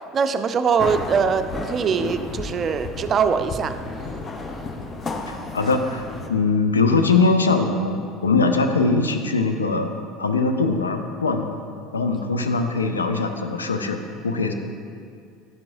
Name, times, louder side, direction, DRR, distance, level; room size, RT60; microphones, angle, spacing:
voice 1, 0.1-3.7, right 6 dB, 35° right, 9 dB, 0.4 m, -22 dB
sound 1, 0.8-6.3, left 3 dB, 30° left, 0.7 m, -32 dB
voice 2, 5.3-9.9 10.2-11.6 11.9-14.5, left 3 dB, 80° left, 6 dB, 0.5 m, -21 dB
10.5 x 7.4 x 2.6 m, 2.3 s
figure-of-eight pair, 70°, 0 cm